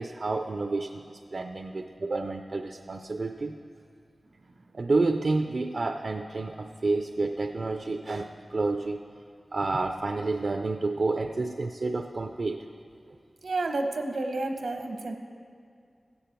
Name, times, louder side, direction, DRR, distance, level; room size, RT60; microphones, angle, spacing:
voice 1, 0.0-3.5 4.7-9.0 9.5-12.6, right 3 dB, 60° right, 5 dB, 0.4 m, -29 dB
voice 2, 13.4-15.2, right 2 dB, 85° right, 5 dB, 0.9 m, -30 dB
14.5 x 8.6 x 4.5 m, 2.3 s
cardioid pair, 50°, 0 cm